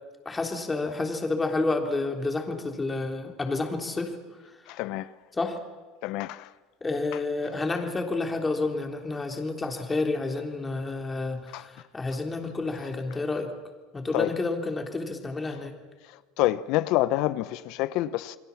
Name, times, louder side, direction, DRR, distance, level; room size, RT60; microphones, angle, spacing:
voice 1, 0.3-4.1 5.3-5.6 6.8-13.5 13.9-15.7, left 3 dB, 15° left, 3.5 m, -29 dB
voice 2, 4.7-5.1 6.0-6.5 11.5-11.6 14.1-14.3 16.4-18.4, left 16 dB, 65° left, 0.8 m, -27 dB
28.5 x 21.5 x 7.2 m
supercardioid pair, 120°, 0 cm